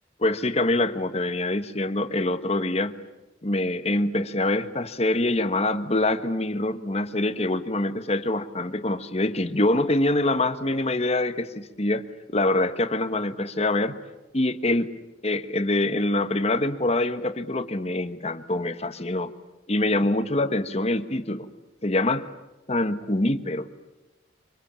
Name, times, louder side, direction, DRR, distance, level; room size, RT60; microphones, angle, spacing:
voice 1, 0.2-2.9 3.4-12.1 12.3-13.9 14.3-14.9 15.2-19.3 19.7-21.5 21.8-22.3 22.7-23.7, left 2 dB, 35° left, 11 dB, 1.3 m, -25 dB
25.5 x 25.5 x 8.8 m, 1.0 s
head